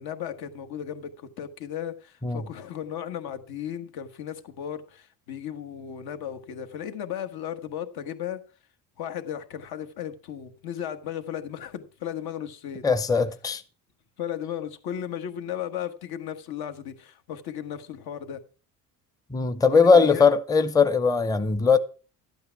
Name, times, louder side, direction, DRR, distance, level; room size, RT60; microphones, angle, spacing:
voice 1, 0.0-8.4 9.0-12.8 14.2-18.4 19.7-20.3, left 9 dB, 75° left, 1.4 m, -35 dB
voice 2, 12.8-13.6 19.3-21.8, left 5 dB, 10° left, 0.6 m, -20 dB
12.0 x 8.6 x 4.6 m
cardioid pair, 115°, 37 cm